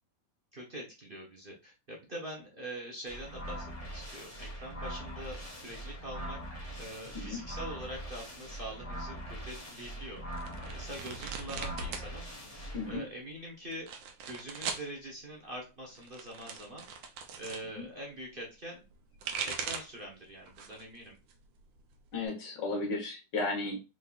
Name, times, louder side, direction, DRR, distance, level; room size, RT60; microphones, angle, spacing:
voice 1, 0.5-6.4 6.8-10.2 10.6-12.2 12.9-13.9 14.2-16.8 17.4-18.8 19.4-21.1, right 1 dB, 35° right, -3 dB, 1.1 m, -44 dB
sound 1, 3.1-13.0, right 1 dB, 20° left, 1.2 m, -42 dB
sound 2, 10.3-12.1 12.4-13.0 13.7-14.9 15.9-17.6 18.9-20.0 20.5-20.9 21.3-22.3, right 6 dB, 85° right, 1.5 m, -40 dB
voice 2, 22.1-23.8, left 3 dB, 70° left, 0 dB, 2.0 m, -34 dB
4.7 x 3.8 x 2.4 m, 0.29 s
omnidirectional pair, 2.0 m